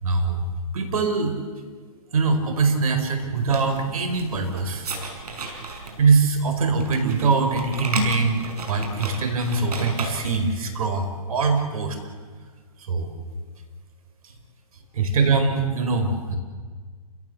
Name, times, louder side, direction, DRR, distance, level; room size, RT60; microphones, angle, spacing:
voice 1, 0.0-0.5 0.7-1.4 2.1-4.9 5.5-5.6 6.0-8.4 8.7-12.0 12.9-13.1 14.9-16.4, right 4 dB, 65° right, 7 dB, 4.9 m, -22 dB
sound 1, 3.4-10.5, right 3 dB, 80° right, 6.1 m, -34 dB
28.5 x 17.5 x 8.0 m, 1.5 s
hypercardioid pair, 160°, 20 cm